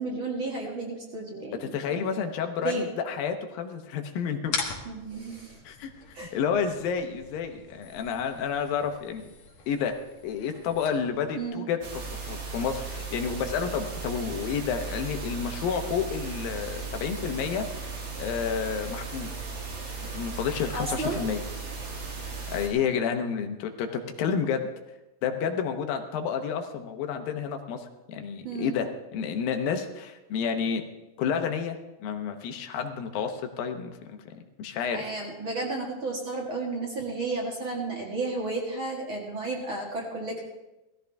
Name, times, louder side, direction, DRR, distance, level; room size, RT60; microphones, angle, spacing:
voice 1, 0.0-2.0 2.6-2.8 4.9-5.6 6.1-6.3 11.4-11.6 20.7-21.2 28.4-28.8 34.9-40.5, right 3 dB, 40° right, -2 dB, 2.4 m, -32 dB
voice 2, 1.4-4.5 5.6-5.9 6.3-9.3 9.7-10.0 10.2-17.7 18.2-19.3 20.0-21.4 22.5-24.7 25.2-30.8 31.2-35.1, left 7 dB, 85° left, 6 dB, 2.8 m, -30 dB
sound 1, 4.4-11.4, left 5 dB, 55° left, 2.5 m, -41 dB
sound 2, 11.8-22.7, right 4 dB, 80° right, 4.4 m, -36 dB
17.5 x 14.5 x 3.5 m, 1.0 s
omnidirectional pair, 4.0 m